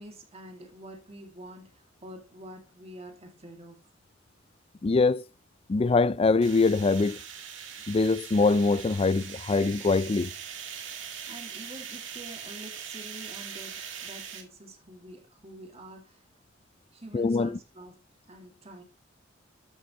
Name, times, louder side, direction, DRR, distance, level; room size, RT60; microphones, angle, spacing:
voice 1, 0.0-3.8 11.3-16.2 16.9-18.0 18.3-18.8, right 1 dB, 30° right, 2.1 m, -47 dB
voice 2, 4.8-5.2 5.7-7.2 7.9-10.3 17.1-17.6, left 3 dB, 30° left, 0.4 m, -23 dB
sound 1, 6.4-14.4, right 8 dB, 70° right, 2.0 m, -41 dB
13.0 x 6.3 x 2.9 m
head